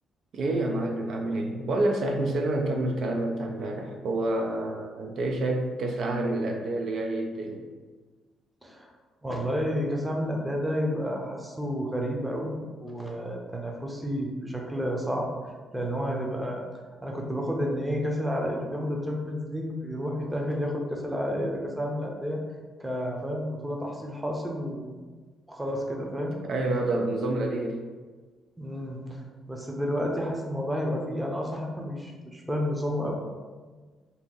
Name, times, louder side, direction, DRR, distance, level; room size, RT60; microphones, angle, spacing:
voice 1, 0.3-7.7 26.4-27.8, right 2 dB, 65° right, 2 dB, 0.4 m, -28 dB
voice 2, 9.2-15.3 15.7-16.6 17.0-22.4 22.8-24.9 25.5-26.4 28.6-29.2 29.5-33.1, equal, 10° right, 0 dB, 0.6 m, -30 dB
2.8 x 2.5 x 3.8 m, 1.4 s
cardioid pair, 90°, 0 cm